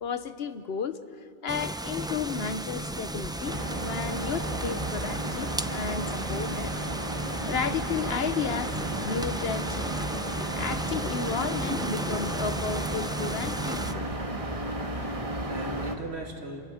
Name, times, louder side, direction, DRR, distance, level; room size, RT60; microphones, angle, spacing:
voice 1, 0.0-1.0 1.4-6.7 7.5-9.9 10.5-14.1, left 6 dB, 65° left, 11 dB, 1.1 m, -33 dB
sound 1, 1.5-13.9, right 1 dB, 5° right, 0.4 m, -34 dB
sound 2, 3.4-16.0, right 1 dB, 30° right, 1.7 m, -33 dB
voice 2, 11.7-12.3 14.5-16.6, right 2 dB, 70° right, 2 dB, 2.5 m, -40 dB
28.5 x 27.5 x 6.4 m, 2.3 s
omnidirectional pair, 1.1 m